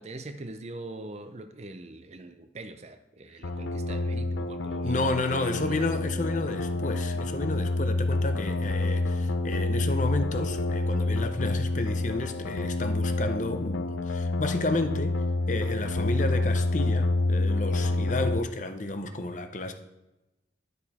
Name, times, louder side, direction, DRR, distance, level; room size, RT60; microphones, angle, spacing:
voice 1, 0.0-5.7, right 2 dB, 35° right, 9 dB, 0.6 m, -43 dB
sound 1, 3.4-18.4, left 2 dB, 85° left, 0.7 m, -28 dB
voice 2, 4.8-15.2 15.5-19.7, left 2 dB, 40° left, 7 dB, 0.7 m, -31 dB
11.0 x 6.8 x 4.3 m, 1.0 s
head